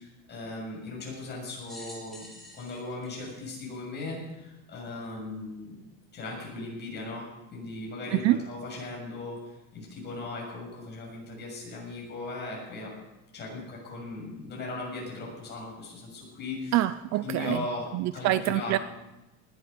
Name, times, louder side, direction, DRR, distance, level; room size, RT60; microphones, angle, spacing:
voice 1, 0.0-2.2 2.5-5.8 6.1-7.3 7.5-9.4 9.7-12.9 13.3-16.8 17.2-17.9 18.1-18.8, left 2 dB, 25° left, -2 dB, 7.0 m, -38 dB
sound 1, 1.6-4.3 5.0-5.1 6.2-6.3, left 1 dB, ahead, 4.7 m, -49 dB
voice 2, 16.7-17.6 17.9-18.8, right 15 dB, 45° right, 14 dB, 0.5 m, -25 dB
19.5 x 11.5 x 5.2 m, 1.0 s
cardioid pair, 160°, 38 cm